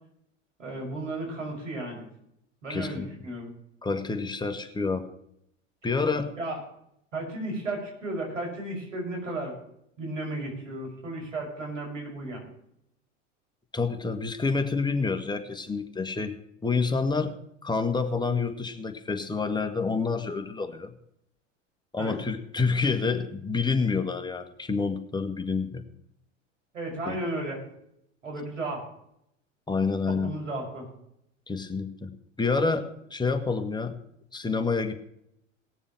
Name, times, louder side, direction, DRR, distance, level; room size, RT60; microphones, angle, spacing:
voice 1, 0.6-2.1 2.6-3.5 6.4-6.6 7.1-9.5 10.0-12.5 22.0-22.2 26.7-27.6 28.2-28.8 30.1-30.9, right 2 dB, 80° right, 0 dB, 5.9 m, -34 dB
voice 2, 2.7-3.1 3.8-5.1 5.8-6.4 13.7-16.4 16.6-17.3 17.6-20.9 21.9-25.8 27.0-27.2 29.7-30.3 31.5-34.0 34.3-34.9, left 4 dB, 10° left, 6 dB, 1.5 m, -28 dB
18.5 x 7.2 x 6.1 m, 0.75 s
figure-of-eight pair, 80°, 37 cm